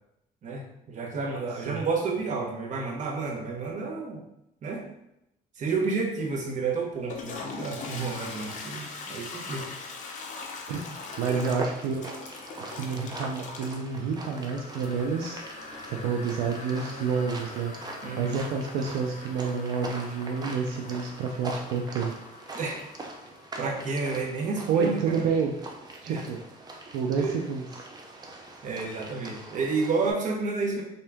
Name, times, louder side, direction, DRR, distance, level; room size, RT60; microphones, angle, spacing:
voice 1, 0.4-4.2 4.6-4.9 5.6-9.7 10.7-10.8 11.3-11.4 18.0-18.4 22.5-22.8 23.6-25.4 26.1-26.2 27.2-27.4 28.6-30.8, right 4 dB, 50° right, 0 dB, 0.9 m, -30 dB
Toilet flush, 6.9-23.7, left 4 dB, 45° left, 0.7 m, -42 dB
voice 2, 11.2-12.0 12.7-15.4 15.9-17.7 18.2-22.1 24.7-25.5 26.0-26.4 26.9-27.6, right 5 dB, 90° right, 1 dB, 0.5 m, -29 dB
sound 1, 11.3-30.1, right 2 dB, 25° right, 0.6 m, -42 dB
3.5 x 2.7 x 3.4 m, 0.83 s
cardioid pair, 110°, 17 cm